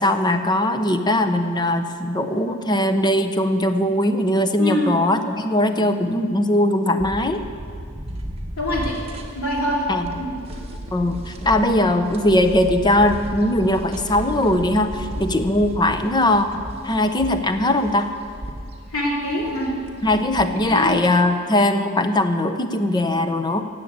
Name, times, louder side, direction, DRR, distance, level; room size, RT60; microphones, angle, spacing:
voice 1, 0.0-7.4 9.9-10.1 10.9-16.5 16.8-18.1 20.0-23.6, left 1 dB, 20° left, 8 dB, 0.8 m, -20 dB
voice 2, 4.6-4.9 8.6-9.0 9.3-9.8 10.2-10.3 18.9-19.7 20.7-20.9, left 1 dB, 90° left, -3 dB, 3.2 m, -24 dB
sound 1, 7.0-21.2, right 1 dB, 30° right, 1.4 m, -34 dB
14.5 x 8.0 x 8.8 m, 2.2 s
head